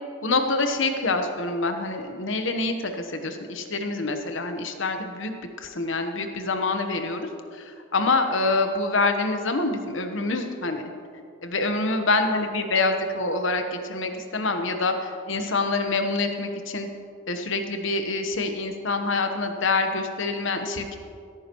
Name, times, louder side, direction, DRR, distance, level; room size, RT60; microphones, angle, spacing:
voice 1, 0.2-5.3 5.6-10.8 11.4-16.9 17.3-20.8, left 3 dB, 60° left, 6 dB, 1.0 m, -26 dB
16.0 x 14.0 x 3.0 m, 2.3 s
head